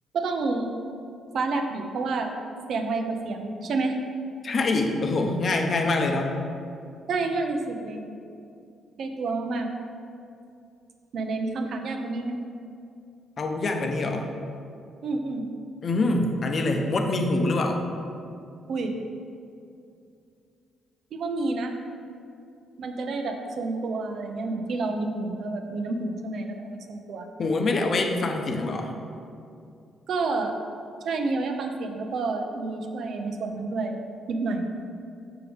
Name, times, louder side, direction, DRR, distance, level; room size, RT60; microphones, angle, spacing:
voice 1, 0.1-0.7 1.3-2.3 2.7-4.0 7.1-8.0 9.0-9.7 11.1-12.4 15.0-15.4 18.7-18.9 21.1-21.8 22.8-27.3 30.1-30.6 31.0-34.0 34.3-34.6, right 3 dB, 65° right, 4 dB, 0.7 m, -29 dB
voice 2, 4.4-6.4 13.4-14.3 15.8-17.8 27.4-28.9, left 2 dB, 45° left, 3 dB, 0.8 m, -25 dB
7.0 x 6.6 x 3.5 m, 2.5 s
cardioid pair, 90°, 0 cm